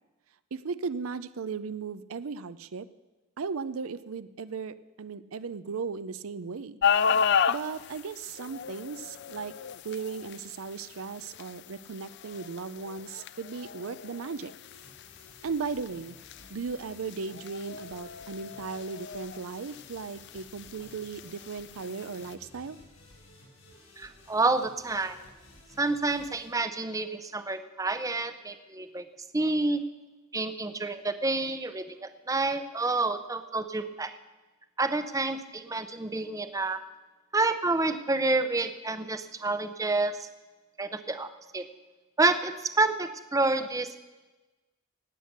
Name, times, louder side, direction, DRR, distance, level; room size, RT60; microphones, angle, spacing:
voice 1, 0.5-2.9 3.4-6.8 7.5-9.5 9.8-14.5 15.4-16.2 16.5-22.8, right 5 dB, 80° right, 14 dB, 0.5 m, -36 dB
sound 1, 6.8-22.4, left 7 dB, 55° left, 0.4 m, -34 dB
sound 2, 14.6-26.5, left 1 dB, 75° left, 6.3 m, -55 dB
voice 2, 24.0-25.2 25.8-29.0 29.3-29.8 30.3-34.1 34.8-36.8 37.3-40.3 40.8-41.6 42.2-43.9, right 3 dB, 15° right, 10 dB, 0.7 m, -28 dB
18.0 x 8.2 x 6.6 m, 1.2 s
head